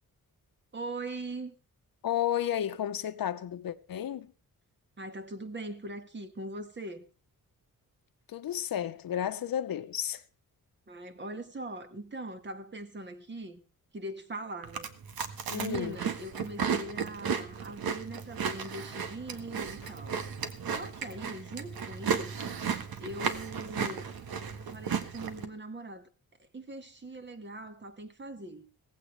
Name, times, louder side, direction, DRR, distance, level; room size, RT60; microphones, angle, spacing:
voice 1, 0.7-1.6 5.0-7.1 10.9-13.6 13.9-14.9 15.5-20.2 20.7-22.6 23.0-24.1 24.6-26.1 26.4-28.7, right 2 dB, 30° right, 1.8 m, -41 dB
voice 2, 2.0-4.3 8.3-10.2 15.5-16.0 19.8-19.9, left 10 dB, 75° left, 1.1 m, -32 dB
Chewing mastication, 14.6-25.4, right 6 dB, 80° right, 1.6 m, -34 dB
17.5 x 15.5 x 3.4 m
wide cardioid pair, 125°, 35 cm